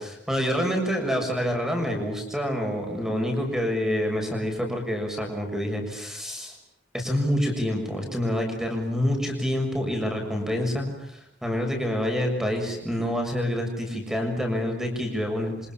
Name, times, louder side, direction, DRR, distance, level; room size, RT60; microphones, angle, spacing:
voice 1, 0.0-6.6 6.9-15.5, equal, ahead, 3 dB, 6.8 m, -27 dB
28.5 x 26.5 x 7.4 m, 0.77 s
head